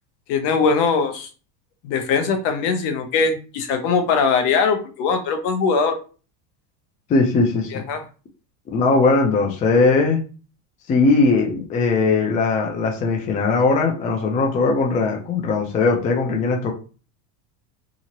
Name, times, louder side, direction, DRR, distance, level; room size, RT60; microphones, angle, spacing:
voice 1, 0.3-1.3 1.8-6.0 7.7-8.0, left 5 dB, 60° left, 6 dB, 0.8 m, -21 dB
voice 2, 7.1-7.7 8.7-10.2 10.9-16.7, left 3 dB, 20° left, 1 dB, 0.3 m, -19 dB
2.8 x 2.5 x 2.9 m, 0.36 s
supercardioid pair, 120°, 47 cm